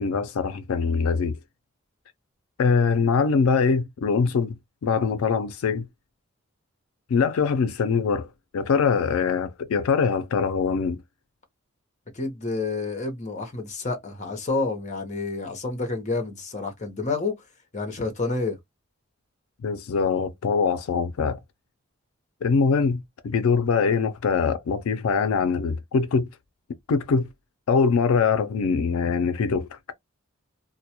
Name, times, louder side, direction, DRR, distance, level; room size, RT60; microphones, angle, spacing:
voice 1, 0.0-1.4 2.6-5.9 7.1-8.3 8.5-11.0 19.6-21.4 22.4-26.3 26.9-27.3 27.7-29.8, left 5 dB, 85° left, 0.4 m, -23 dB
voice 2, 12.1-17.4 17.7-18.6, left 3 dB, 35° left, 0.7 m, -29 dB
2.2 x 2.0 x 2.8 m
head